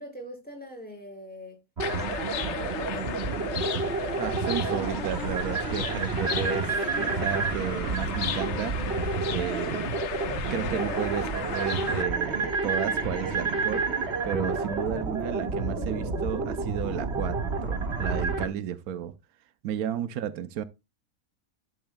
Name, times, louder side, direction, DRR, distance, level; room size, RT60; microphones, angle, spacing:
voice 1, 0.0-1.6 2.4-3.1, equal, 5° left, 5.5 m, -43 dB
sound 1, 1.8-12.0, left 9 dB, 60° left, 0.9 m, -36 dB
sound 2, 1.8-18.5, right 3 dB, 50° right, 1.8 m, -29 dB
voice 2, 4.2-8.8 9.3-9.9 10.5-13.9 14.2-19.1 19.6-20.6, right 9 dB, 85° right, 1.2 m, -33 dB
12.0 x 7.9 x 2.2 m
omnidirectional pair, 1.5 m